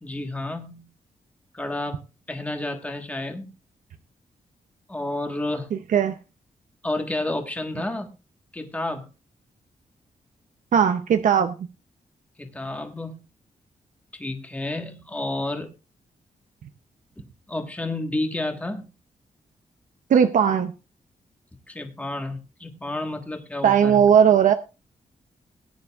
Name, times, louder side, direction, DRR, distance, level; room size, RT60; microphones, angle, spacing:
voice 1, 0.0-0.8 1.5-2.0 2.3-3.5 4.9-5.7 6.8-8.1 8.5-9.1 12.4-13.2 14.1-15.7 17.2-18.9 21.7-24.1, left 2 dB, 10° left, 4 dB, 1.4 m, -30 dB
voice 2, 5.7-6.2 10.7-11.5 20.1-20.7 23.6-24.5, right 8 dB, 70° right, 8 dB, 0.7 m, -18 dB
19.0 x 9.5 x 2.4 m, 0.30 s
wide cardioid pair, 150°, 14 cm